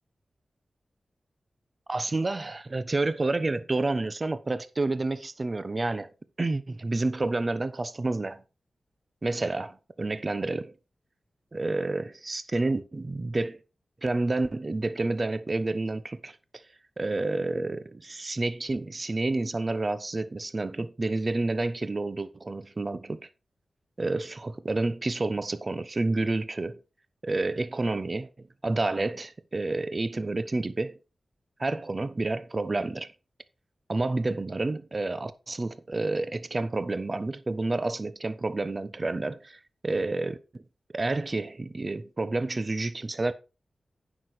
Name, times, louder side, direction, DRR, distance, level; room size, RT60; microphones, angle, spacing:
voice 1, 1.9-6.1 6.4-8.4 9.2-10.7 11.5-13.6 14.0-16.6 17.0-23.3 24.0-26.8 27.2-31.0 31.6-33.1 33.9-40.6 40.9-43.3, right 2 dB, 45° right, 0.9 m, -29 dB
9.4 x 6.2 x 4.8 m
cardioid pair, 40°, 0 cm